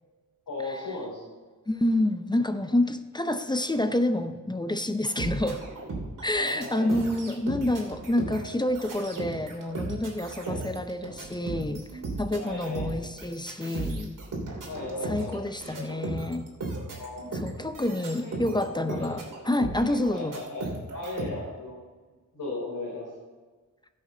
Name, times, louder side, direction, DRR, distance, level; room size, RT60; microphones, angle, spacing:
voice 1, 0.5-1.2 6.3-6.9 10.4-10.7 12.4-13.0 14.6-15.4 16.9-17.2 18.2-19.4 20.1-21.8 22.3-23.1, left 2 dB, 85° left, -7 dB, 3.9 m, -37 dB
voice 2, 1.7-5.6 6.2-11.9 12.2-14.2 15.0-16.5 17.3-20.4, left 1 dB, 15° left, 9 dB, 0.6 m, -28 dB
sound 1, 5.0-21.3, right 2 dB, 80° right, 2.9 m, -36 dB
16.0 x 7.7 x 3.9 m, 1.3 s
wide cardioid pair, 140°, 32 cm